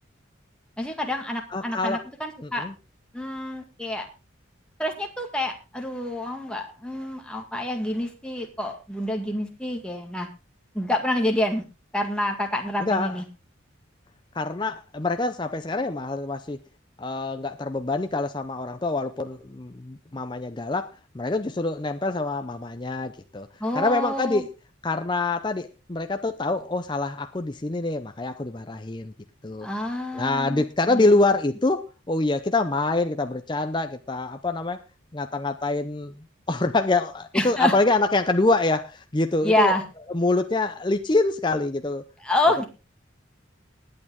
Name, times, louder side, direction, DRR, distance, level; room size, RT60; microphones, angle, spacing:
voice 1, 0.8-2.7 3.1-4.1 4.8-10.3 10.7-11.6 11.9-13.2 23.6-24.4 29.6-31.1 37.3-37.8 39.4-39.8 42.2-42.6, left 1 dB, 5° left, 2 dB, 2.1 m, -27 dB
voice 2, 1.5-2.0 2.4-2.7 12.8-13.2 14.3-16.6 17.0-23.5 23.7-24.5 24.8-29.1 29.4-29.7 30.1-34.8 35.1-36.1 36.5-39.7 40.1-42.0, left 2 dB, 25° left, 8 dB, 0.6 m, -25 dB
19.5 x 8.7 x 3.6 m, 0.30 s
head